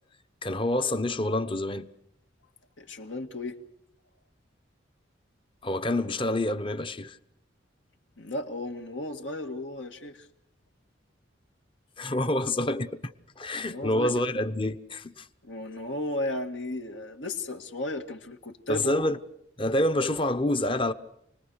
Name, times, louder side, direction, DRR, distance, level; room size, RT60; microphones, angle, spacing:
voice 1, 0.4-1.9 5.6-7.2 12.0-15.3 18.7-19.2 19.6-20.9, left 1 dB, 25° left, 1.0 m, -27 dB
voice 2, 2.8-3.6 8.2-10.3 13.6-14.1 15.4-19.1, left 1 dB, 75° left, 2.2 m, -34 dB
29.0 x 20.5 x 6.5 m
head